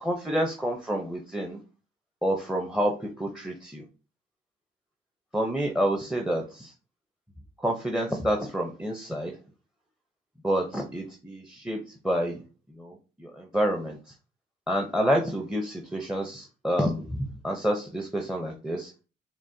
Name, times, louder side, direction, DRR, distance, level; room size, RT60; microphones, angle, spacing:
voice 1, 0.0-1.6 2.2-3.8 5.3-6.7 7.6-9.3 10.4-11.8 12.0-12.4 12.8-12.9 13.2-14.0 14.7-17.2 17.4-18.9, equal, 5° right, 3 dB, 0.6 m, -28 dB
6.0 x 2.1 x 2.6 m, 0.34 s
cardioid pair, 90°, 20 cm